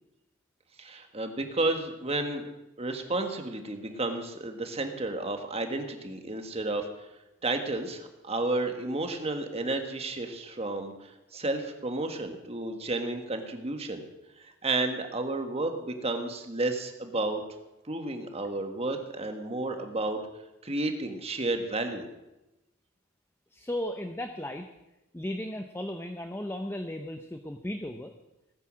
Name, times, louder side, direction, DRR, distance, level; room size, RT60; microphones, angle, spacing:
voice 1, 0.8-2.4 2.8-6.9 7.4-14.0 14.4-17.4 17.9-20.2 20.6-22.1, right 2 dB, 30° right, 6 dB, 1.6 m, -32 dB
voice 2, 23.5-24.7 25.1-28.1, left 1 dB, 10° left, 6 dB, 0.7 m, -35 dB
18.5 x 9.6 x 6.3 m, 0.98 s
head